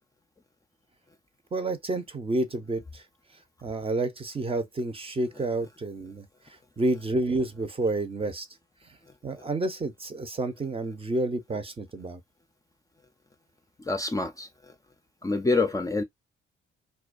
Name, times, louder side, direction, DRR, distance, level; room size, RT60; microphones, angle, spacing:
voice 1, 1.5-3.0 3.6-6.3 6.8-8.5 9.2-12.2, right 2 dB, 25° right, 0.7 m, -29 dB
voice 2, 13.8-14.7 15.2-16.0, left 3 dB, 15° left, 0.5 m, -27 dB
2.2 x 2.2 x 2.4 m
supercardioid pair, 65°, 21 cm